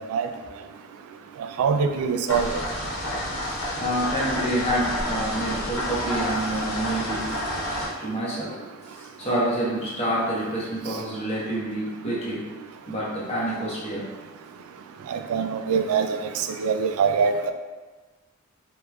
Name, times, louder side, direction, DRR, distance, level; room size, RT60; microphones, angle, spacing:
voice 1, 1.6-2.5 15.1-16.1 16.6-17.5, right 6 dB, 90° right, 9 dB, 0.3 m, -23 dB
sound 1, 2.3-7.9, left 1 dB, 80° left, 0.8 m, -29 dB
voice 2, 3.5-7.2 8.0-8.5 8.9-12.4 12.9-14.0, right 1 dB, 30° left, -7 dB, 0.9 m, -28 dB
3.5 x 3.0 x 2.3 m, 1.3 s
head